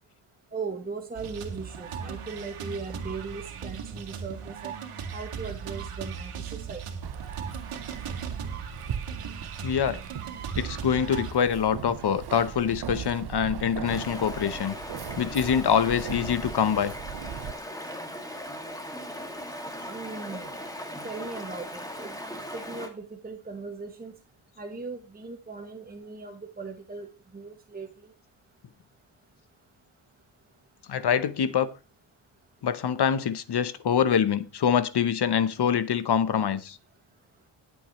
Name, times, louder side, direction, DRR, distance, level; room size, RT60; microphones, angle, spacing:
voice 1, 0.5-4.7 5.1-6.8 19.9-20.6 21.0-22.1 22.5-24.1 24.6-27.1 27.3-27.9, right 4 dB, 20° right, 1.2 m, -38 dB
sound 1, 1.2-11.3, right 6 dB, 85° right, 2.3 m, -38 dB
Keys jangling, 7.0-17.5, right 9 dB, 50° right, 0.8 m, -39 dB
voice 2, 9.6-10.0 10.6-14.7 15.2-16.9 30.9-31.7 32.6-36.8, left 8 dB, 50° left, 0.8 m, -25 dB
Stream, 13.8-22.9, equal, 5° left, 2.1 m, -38 dB
19.5 x 8.1 x 3.1 m
wide cardioid pair, 135°, 50 cm